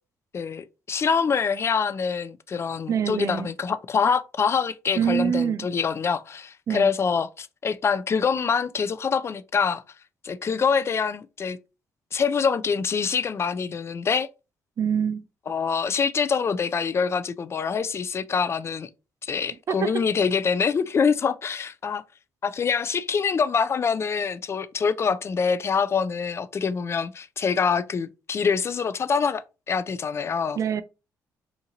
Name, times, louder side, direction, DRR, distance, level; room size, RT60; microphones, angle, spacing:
voice 1, 0.3-9.8 10.2-11.6 12.1-14.3 15.5-18.9 19.2-22.0 22.4-30.6, left 6 dB, 40° left, 0.4 m, -25 dB
voice 2, 2.9-3.5 5.0-5.7 6.7-6.9 14.8-15.2 19.7-20.0 30.6-30.8, right 8 dB, 50° right, 0.4 m, -25 dB
2.9 x 2.5 x 3.8 m
cardioid pair, 75°, 7 cm